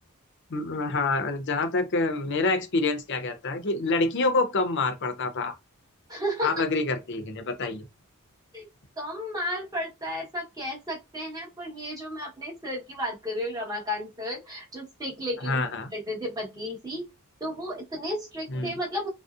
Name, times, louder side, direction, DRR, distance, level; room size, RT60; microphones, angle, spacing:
voice 1, 0.5-5.5 6.4-7.9 15.4-15.9 18.5-18.8, left 3 dB, 55° left, 0.6 m, -27 dB
voice 2, 6.1-6.5 8.5-8.7 9.0-17.1 17.4-19.1, equal, 15° right, 1.0 m, -33 dB
2.6 x 2.0 x 2.4 m
head